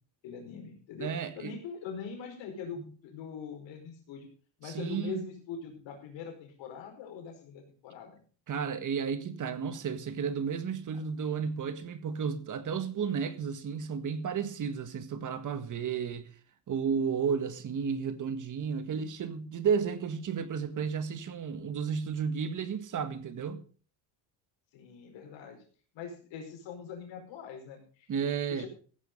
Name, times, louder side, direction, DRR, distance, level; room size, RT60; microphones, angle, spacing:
voice 1, 0.2-4.3 4.6-8.2 24.7-25.6 25.9-28.1 28.5-28.7, left 6 dB, 85° left, 5.0 m, -42 dB
voice 2, 1.0-1.6 2.8-2.9 4.6-5.3 8.5-16.3 16.7-23.6 28.1-28.7, right 6 dB, 45° right, 1.7 m, -33 dB
15.5 x 9.2 x 5.3 m
cardioid pair, 135°, 43 cm